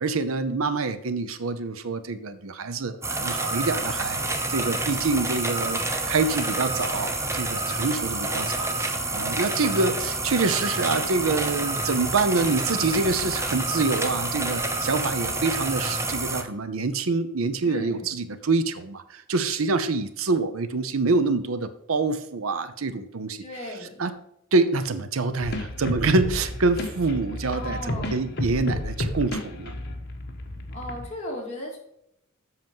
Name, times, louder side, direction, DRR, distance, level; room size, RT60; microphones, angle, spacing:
voice 1, 0.0-23.4 24.0-24.1 24.5-29.7, right 3 dB, 75° right, 12 dB, 0.7 m, -26 dB
sound 1, 3.0-16.4, right 2 dB, 15° right, 0.9 m, -28 dB
voice 2, 17.6-18.1 23.4-24.0 27.5-28.3 30.7-31.8, left 1 dB, 35° left, -2 dB, 2.5 m, -36 dB
sound 2, 25.4-31.1, left 1 dB, 50° left, 1.3 m, -32 dB
7.9 x 6.0 x 5.4 m, 0.76 s
head